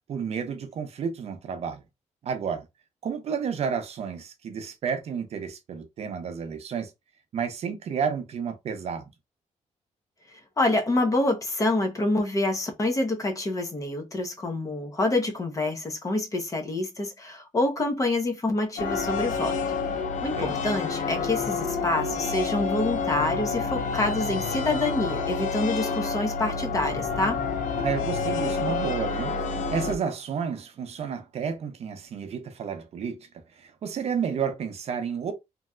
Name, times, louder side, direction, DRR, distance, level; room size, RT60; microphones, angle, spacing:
voice 1, 0.1-1.8 2.2-2.7 3.0-6.9 7.3-9.1 20.3-20.6 27.8-29.3 29.7-35.3, right 6 dB, 55° right, 0.6 m, -31 dB
voice 2, 10.6-19.6 20.2-27.4, left 2 dB, 25° left, 0.7 m, -27 dB
sound 1, 18.8-30.0, left 5 dB, 80° left, 0.4 m, -29 dB
3.0 x 2.7 x 2.3 m
cardioid pair, 155°, 13 cm